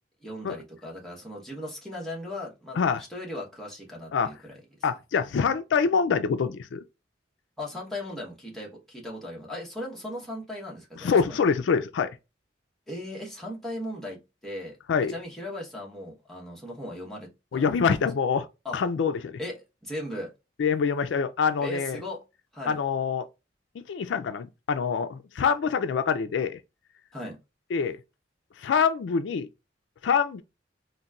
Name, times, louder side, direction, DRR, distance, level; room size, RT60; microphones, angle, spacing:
voice 1, 0.2-4.6 7.6-11.4 12.9-14.8 15.1-17.6 18.6-18.8 19.4-20.3 21.6-22.2 22.5-22.8 27.1-27.4, left 1 dB, ahead, 1.0 m, -37 dB
voice 2, 4.8-6.8 11.0-12.1 14.9-15.1 17.5-18.5 18.7-19.4 20.6-22.0 22.7-23.3 23.9-26.6 27.7-28.0 28.6-29.5 30.0-30.4, left 6 dB, 80° left, 0.4 m, -25 dB
4.0 x 2.1 x 2.4 m
head